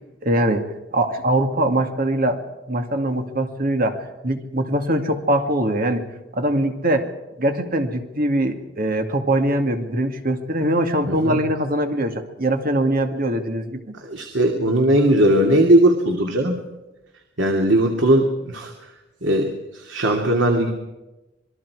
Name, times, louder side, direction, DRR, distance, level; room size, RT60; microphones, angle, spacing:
voice 1, 0.2-0.6 0.9-2.4 2.7-4.0 4.2-6.1 6.3-7.1 7.4-13.9, right 1 dB, 50° right, 5 dB, 2.3 m, -22 dB
voice 2, 11.1-11.4 14.0-16.6 17.4-18.7 19.2-20.7, right 1 dB, 90° right, 2 dB, 2.6 m, -18 dB
27.0 x 21.0 x 4.8 m, 1.0 s
head